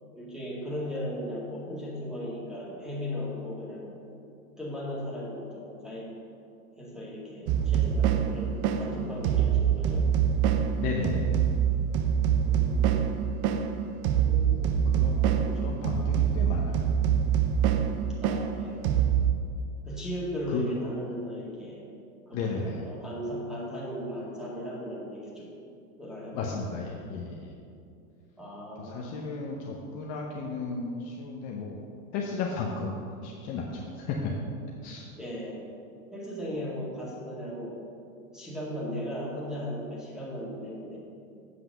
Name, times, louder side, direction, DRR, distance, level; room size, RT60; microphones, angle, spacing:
voice 1, 0.1-4.2 4.6-6.1 6.8-10.1 12.4-13.1 14.3-14.9 15.2-15.8 18.2-18.8 19.8-21.9 22.3-25.5 26.0-26.4 28.4-29.1 35.1-35.6 36.1-37.8 38.3-41.0, equal, ahead, -6 dB, 2.0 m, -37 dB
sound 1, 7.5-19.3, right 8 dB, 40° right, 0.6 m, -25 dB
voice 2, 10.8-11.4 14.9-15.2 15.6-16.9 20.5-20.7 22.3-22.8 26.3-27.5 28.8-31.8 32.1-34.3 34.8-35.1, left 4 dB, 35° left, -2 dB, 1.0 m, -34 dB
8.0 x 5.8 x 6.6 m, 2.5 s
supercardioid pair, 140°, 43 cm